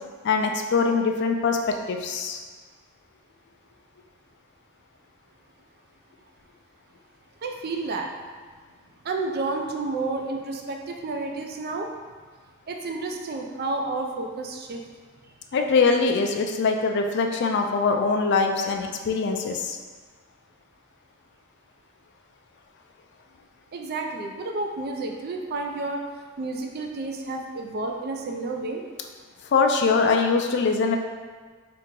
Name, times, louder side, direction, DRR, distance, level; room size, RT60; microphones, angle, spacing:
voice 1, 0.2-1.6 1.9-2.4 15.5-19.8 29.5-31.0, left 4 dB, 55° left, 3 dB, 0.4 m, -22 dB
voice 2, 7.4-8.1 9.0-11.9 12.7-14.8 23.7-26.0 26.4-28.8, right 3 dB, 50° right, 2 dB, 0.4 m, -30 dB
3.4 x 2.9 x 3.7 m, 1.5 s
head